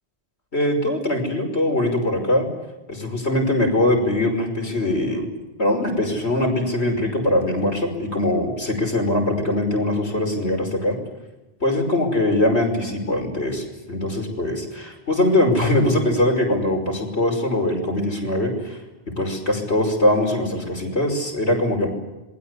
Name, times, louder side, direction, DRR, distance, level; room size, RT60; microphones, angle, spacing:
voice 1, 0.5-2.5 2.9-5.3 5.6-11.0 11.6-18.8 19.1-21.9, left 1 dB, 85° left, 2 dB, 5.9 m, -22 dB
27.0 x 21.5 x 8.3 m, 1.1 s
omnidirectional pair, 1.1 m